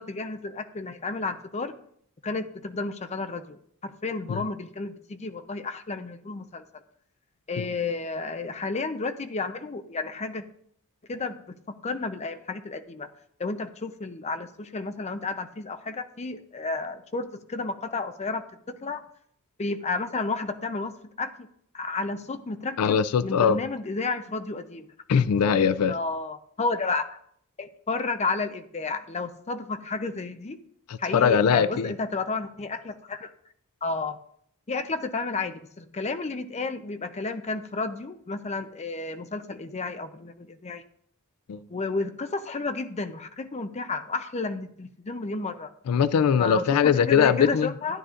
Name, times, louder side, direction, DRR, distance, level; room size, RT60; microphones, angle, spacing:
voice 1, 0.0-1.8 2.2-6.8 7.5-10.4 11.1-13.1 13.4-19.0 19.6-21.5 21.7-24.9 25.9-27.2 27.6-30.6 31.0-33.3 33.8-34.2 34.7-40.8 41.7-45.7 46.4-48.0, left 3 dB, 30° left, 0.6 m, -32 dB
voice 2, 22.8-23.6 25.1-26.0 30.9-31.9 41.5-41.6 45.9-47.7, left 7 dB, 80° left, 0.3 m, -21 dB
12.5 x 9.7 x 2.5 m
head